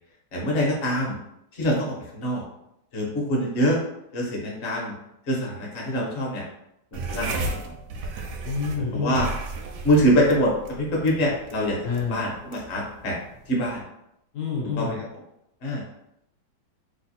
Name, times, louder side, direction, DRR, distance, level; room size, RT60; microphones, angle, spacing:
voice 1, 0.3-1.2 1.5-2.4 2.9-3.8 4.1-4.9 5.2-6.4 6.9-7.7 8.8-9.3 9.8-11.8 12.1-13.2 13.5-13.8 14.8-15.0 15.6-15.8, equal, 45° left, -2 dB, 1.0 m, -24 dB
sound 1, 6.9-13.8, right 3 dB, 75° right, 1.0 m, -35 dB
voice 2, 8.4-9.3 11.8-12.2 14.3-15.0, left 4 dB, 80° left, -3 dB, 0.7 m, -28 dB
3.2 x 2.3 x 4.1 m, 0.80 s
omnidirectional pair, 2.2 m